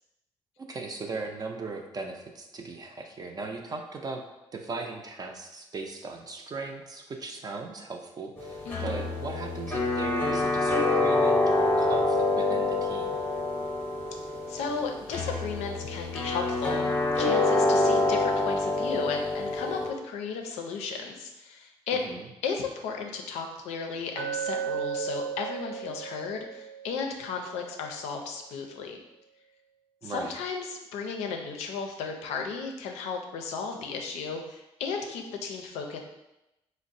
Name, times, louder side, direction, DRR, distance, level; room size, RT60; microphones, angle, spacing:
voice 1, 0.6-4.2 4.5-13.2 21.9-22.3 30.0-30.4, right 3 dB, 35° right, 3 dB, 0.4 m, -38 dB
sound 1, 8.4-19.9, left 2 dB, 20° left, 0.8 m, -26 dB
voice 2, 8.6-9.0 14.5-22.0 22.4-29.0 30.0-36.0, left 5 dB, 90° left, 3 dB, 0.4 m, -34 dB
Glass, 24.2-28.3, right 8 dB, 75° right, 1.1 m, -36 dB
3.9 x 2.0 x 2.6 m, 0.94 s
cardioid pair, 75°, 11 cm